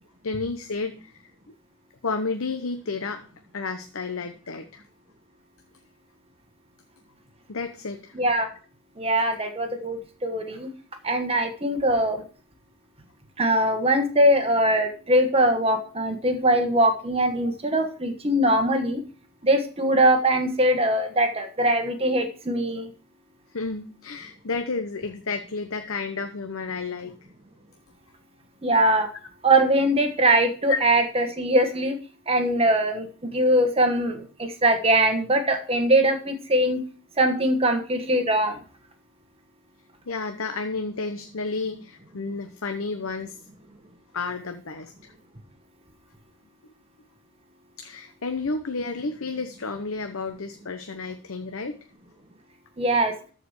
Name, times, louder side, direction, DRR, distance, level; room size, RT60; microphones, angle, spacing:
voice 1, 0.2-1.1 1.5-1.6 2.0-3.3 3.5-4.8 7.5-8.1 23.5-27.2 30.7-30.8 40.1-43.4 44.1-45.1 47.8-51.8, left 4 dB, 60° left, 7 dB, 0.9 m, -31 dB
voice 2, 8.1-8.5 9.0-10.7 11.0-12.2 13.4-19.0 19.4-22.9 28.6-29.1 29.4-32.0 32.3-36.8 37.2-38.6 52.8-53.1, right 1 dB, 25° right, 5 dB, 1.4 m, -22 dB
14.0 x 5.0 x 6.5 m, 0.39 s
head